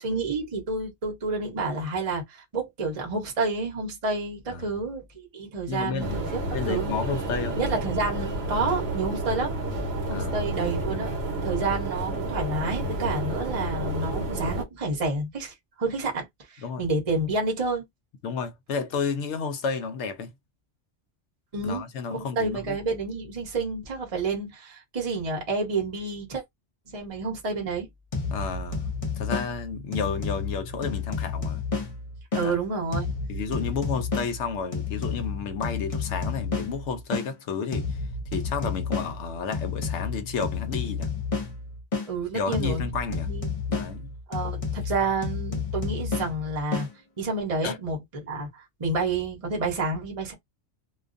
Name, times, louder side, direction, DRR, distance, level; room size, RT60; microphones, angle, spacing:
voice 1, 0.0-7.0 7.5-9.5 10.1-11.1 11.4-17.9 21.5-21.9 22.1-26.4 26.9-27.9 32.3-33.1 42.1-42.8 43.3-43.5 44.3-46.9 47.2-50.3, right 3 dB, 30° right, 0.9 m, -29 dB
voice 2, 5.7-6.2 6.5-7.6 10.1-10.4 16.6-16.8 18.2-20.3 21.6-22.8 28.3-28.8 29.2-31.6 32.4-32.6 33.3-38.0 38.3-41.1 42.3-43.3 43.7-44.1 47.6-47.8, left 5 dB, 70° left, 0.9 m, -31 dB
sound 1, 6.0-14.6, right 1 dB, 60° right, 1.0 m, -30 dB
sound 2, 28.1-32.5 32.9-37.3 37.7-42.1 42.5-46.9, left 4 dB, 40° left, 0.5 m, -31 dB
2.3 x 2.3 x 2.5 m
omnidirectional pair, 1.3 m